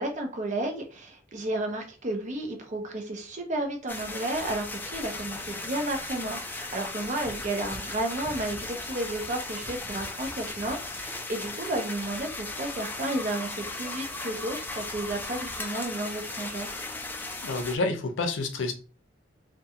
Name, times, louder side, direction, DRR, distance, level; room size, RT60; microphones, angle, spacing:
voice 1, 0.0-16.7, right 1 dB, 40° right, 0.5 m, -32 dB
sound 1, 3.9-17.8, left 2 dB, 10° left, 0.3 m, -37 dB
voice 2, 17.4-18.7, left 3 dB, 85° left, 0.5 m, -28 dB
2.3 x 2.2 x 2.8 m
head